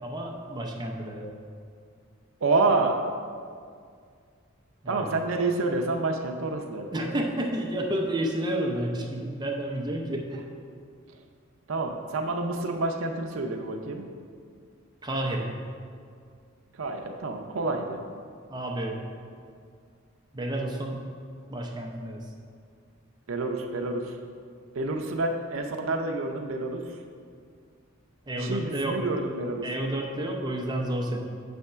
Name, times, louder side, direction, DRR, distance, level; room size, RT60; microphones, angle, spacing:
voice 1, 0.0-1.3 4.8-5.1 6.9-10.5 15.0-15.5 18.5-19.0 20.3-21.1 21.5-22.3 28.3-29.0 29.6-31.2, right 1 dB, 20° right, 1 dB, 0.6 m, -30 dB
voice 2, 2.4-3.0 4.9-7.2 11.7-14.0 16.8-18.0 23.3-24.1 24.7-26.8 28.4-29.6, right 3 dB, 85° right, 4 dB, 0.5 m, -28 dB
7.5 x 3.5 x 5.5 m, 2.2 s
head